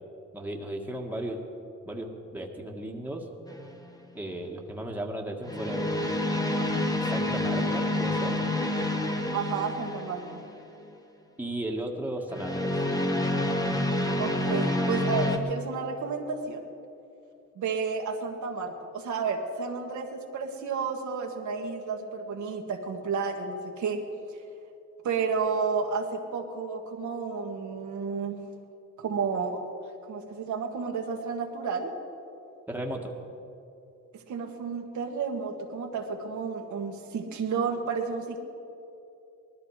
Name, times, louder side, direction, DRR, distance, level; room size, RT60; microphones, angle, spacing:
voice 1, 0.3-1.4 1.9-3.3 4.1-6.2 7.0-8.4 11.4-12.7 32.7-33.1, right 1 dB, 5° right, 0 dB, 1.7 m, -35 dB
sound 1, 3.5-3.8 5.4-10.5 12.3-15.4, left 1 dB, 10° left, 1.4 m, -28 dB
voice 2, 9.3-10.4 14.2-16.7 17.6-24.0 25.0-28.4 29.0-29.6 30.1-31.9 34.3-38.4, right 5 dB, 70° right, 2 dB, 1.7 m, -31 dB
19.0 x 13.0 x 4.9 m, 2.8 s
cardioid pair, 85°, 31 cm